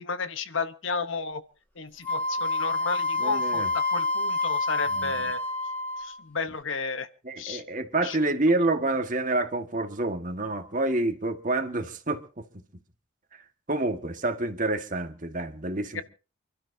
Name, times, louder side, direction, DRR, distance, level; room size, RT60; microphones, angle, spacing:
voice 1, 0.0-1.4 1.8-5.4 6.0-7.1 7.4-7.6 8.0-8.2 15.9-16.0, left 4 dB, 65° left, 1.0 m, -32 dB
Wind instrument woodwind instrument, 2.0-6.2, left 2 dB, 10° left, 2.7 m, -28 dB
voice 2, 3.2-3.7 4.9-5.2 7.2-12.2 13.7-16.0, right 2 dB, 40° right, 1.7 m, -28 dB
29.0 x 12.5 x 2.7 m
head